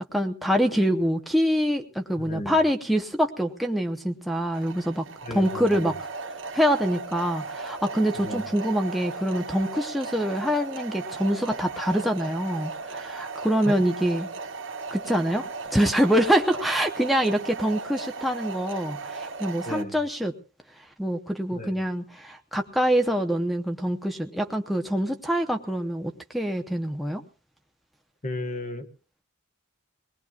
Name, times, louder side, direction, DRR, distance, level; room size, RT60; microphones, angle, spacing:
voice 1, 0.1-6.0 6.5-14.3 14.9-20.3 21.0-27.2, equal, ahead, 3 dB, 0.8 m, -25 dB
voice 2, 2.2-2.6 5.2-5.9 8.2-8.4 13.7-13.8 19.6-20.0 21.5-21.7 28.2-28.9, left 1 dB, 30° left, 6 dB, 1.2 m, -33 dB
sound 1, 4.5-19.8, right 4 dB, 60° right, 1.3 m, -36 dB
23.5 x 19.5 x 2.4 m, 0.34 s
head